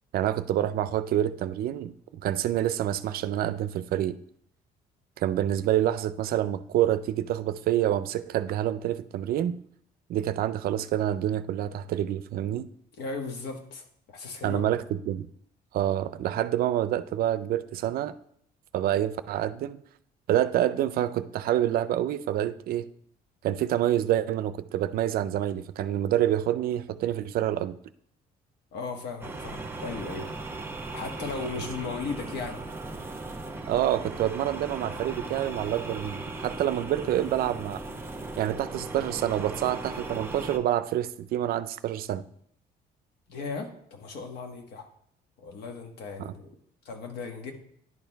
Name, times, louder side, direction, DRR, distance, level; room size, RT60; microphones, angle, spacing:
voice 1, 0.1-1.9 2.2-4.2 5.2-9.6 10.1-12.7 14.4-15.3 15.7-18.2 18.7-19.8 20.3-22.9 23.4-27.8 33.7-37.8 38.4-42.2 46.2-46.3, right 12 dB, 65° right, 14 dB, 0.4 m, -27 dB
voice 2, 13.0-14.7 28.7-30.3 30.9-32.6 43.3-44.9 45.4-46.5 46.8-47.5, left 4 dB, 80° left, 4 dB, 1.3 m, -36 dB
sound 1, 29.2-40.6, right 2 dB, 15° right, 0.7 m, -37 dB
10.5 x 4.4 x 3.4 m, 0.67 s
cardioid pair, 110°, 17 cm